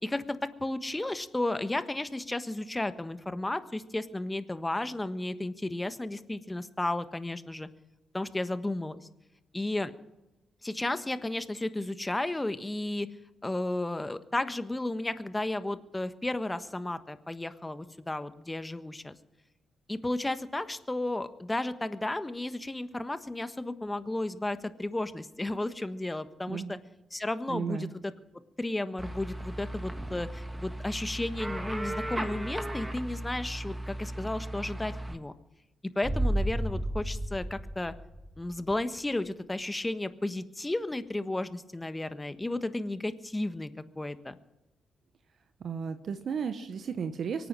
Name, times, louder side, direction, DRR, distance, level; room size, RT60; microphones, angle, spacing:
voice 1, 0.0-7.7 8.1-9.0 9.5-9.9 10.6-13.1 13.4-19.1 19.9-26.8 27.1-28.1 28.6-35.3 35.9-37.9 38.4-43.7 44.0-44.4, left 2 dB, 20° left, 11 dB, 1.4 m, -33 dB
voice 2, 27.5-27.9 45.6-47.5, right 6 dB, 60° right, 9 dB, 1.1 m, -34 dB
sound 1, 29.0-35.1, right 1 dB, 15° right, 2.2 m, -37 dB
sound 2, 36.0-38.7 39.0-39.1, right 1 dB, 35° right, 4.3 m, -32 dB
24.0 x 9.4 x 6.2 m, 0.99 s
hypercardioid pair, 40°, 0 cm